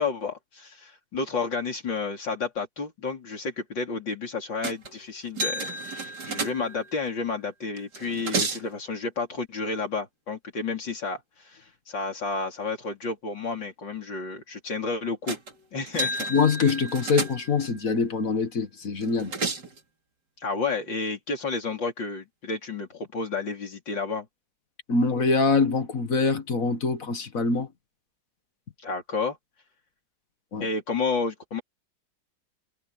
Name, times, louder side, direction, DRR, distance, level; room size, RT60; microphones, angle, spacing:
voice 1, 0.0-15.4 15.7-16.2 20.4-24.3 28.8-29.4 30.6-31.6, left 4 dB, 85° left, 5.0 m, -31 dB
sound 1, 4.6-5.0 5.4-7.0 7.8-8.7 15.3-15.5 15.9-17.7 19.0-19.8, right 2 dB, 65° right, 3.4 m, -31 dB
voice 2, 16.3-19.3 24.9-27.7 30.5-30.7, left 4 dB, 50° left, 2.0 m, -24 dB
omnidirectional pair, 1.9 m